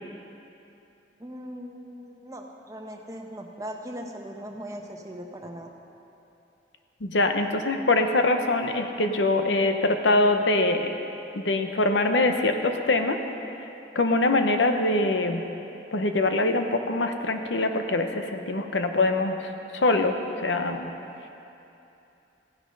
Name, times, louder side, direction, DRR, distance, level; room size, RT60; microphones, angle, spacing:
voice 1, 1.2-5.7, equal, 20° right, 2 dB, 1.0 m, -39 dB
voice 2, 7.0-10.9 11.3-13.2 13.9-15.4 15.9-20.1 20.4-20.9, left 2 dB, 80° left, 6 dB, 0.9 m, -23 dB
15.5 x 9.9 x 5.4 m, 2.8 s
head